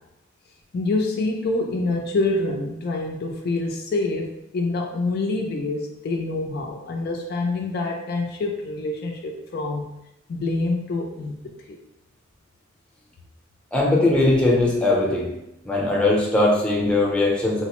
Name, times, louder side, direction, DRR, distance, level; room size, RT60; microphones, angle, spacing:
voice 1, 0.7-9.9 10.3-11.4 11.7-11.8, left 2 dB, 50° left, 1 dB, 0.3 m, -26 dB
voice 2, 13.7-15.3 15.6-17.6, left 2 dB, 5° left, -4 dB, 0.6 m, -20 dB
3.8 x 2.0 x 2.9 m, 0.87 s
head